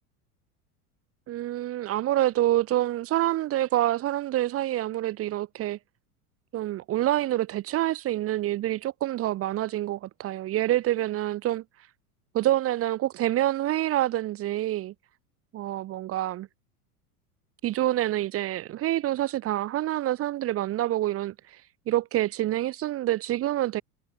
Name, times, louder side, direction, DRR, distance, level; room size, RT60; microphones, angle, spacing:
voice 1, 1.3-5.8 6.5-11.6 12.3-14.9 15.5-16.5 17.6-21.3 21.9-23.8, right 14 dB, 30° right, 1.0 m, -27 dB
figure-of-eight pair, 80°, 45 cm